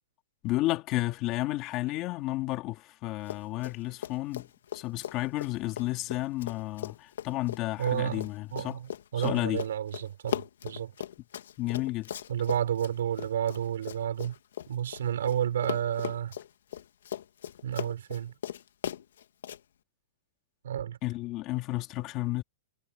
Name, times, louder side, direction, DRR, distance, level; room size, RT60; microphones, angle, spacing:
voice 1, 0.4-4.5 4.7-8.8 9.1-9.6 11.6-12.1 21.0-22.4, left 17 dB, 30° left, 3.2 m, -32 dB
Run, 3.2-3.8 4.0-15.4 15.6-19.6, left 10 dB, 85° left, 2.1 m, -38 dB
voice 2, 7.8-10.9 12.3-14.3 14.7-16.4 17.6-18.3 20.6-21.0, right 10 dB, 85° right, 4.2 m, -31 dB
supercardioid pair, 165°, 0 cm